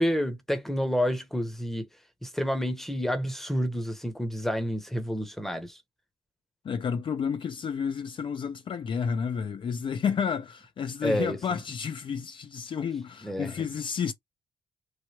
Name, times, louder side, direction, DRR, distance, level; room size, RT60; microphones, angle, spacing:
voice 1, 0.0-1.8 2.2-5.8 11.0-11.4 13.2-13.5, equal, 5° left, 0.8 m, -29 dB
voice 2, 6.6-14.1, left 6 dB, 45° left, 0.4 m, -31 dB
3.2 x 2.2 x 2.9 m
cardioid pair, 90°, 12 cm